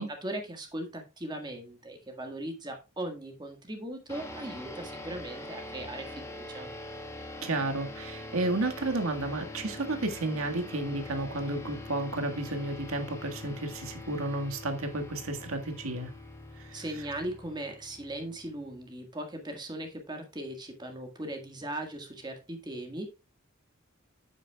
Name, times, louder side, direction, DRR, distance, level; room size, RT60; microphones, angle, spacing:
voice 1, 0.0-6.7 16.7-23.1, right 1 dB, 20° right, 1.7 m, -39 dB
sound 1, 4.1-18.9, left 2 dB, 15° left, 1.5 m, -44 dB
voice 2, 7.4-16.1 16.6-17.1, right 2 dB, 85° right, 1.8 m, -32 dB
9.2 x 8.5 x 2.3 m
head